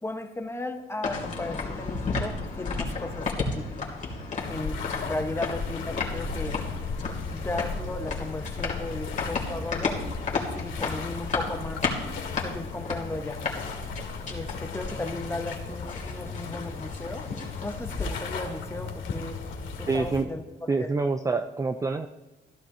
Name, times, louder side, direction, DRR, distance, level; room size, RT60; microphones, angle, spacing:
voice 1, 0.0-3.6 4.5-6.6 7.3-10.0 10.5-11.8 12.4-13.4 14.3-17.3 17.6-19.4 19.8-20.9, left 2 dB, 10° left, 5 dB, 1.1 m, -35 dB
sound 1, 1.0-18.1, left 4 dB, 40° left, 2.7 m, -34 dB
sound 2, 4.4-20.2, left 4 dB, 75° left, 2.5 m, -36 dB
voice 2, 19.9-20.3 20.7-22.1, right 4 dB, 15° right, 8 dB, 0.4 m, -26 dB
14.5 x 11.5 x 2.8 m, 1.1 s
cardioid pair, 90°, 20 cm